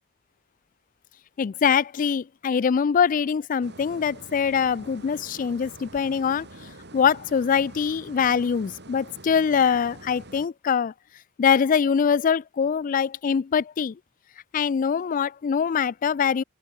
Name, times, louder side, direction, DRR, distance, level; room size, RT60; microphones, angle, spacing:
voice 1, 1.4-6.5 6.9-10.9 11.4-14.0 14.5-16.4, left 7 dB, 40° left, 0.3 m, -23 dB
sound 1, 3.6-10.5, right 2 dB, 55° right, 7.6 m, -45 dB
open air
head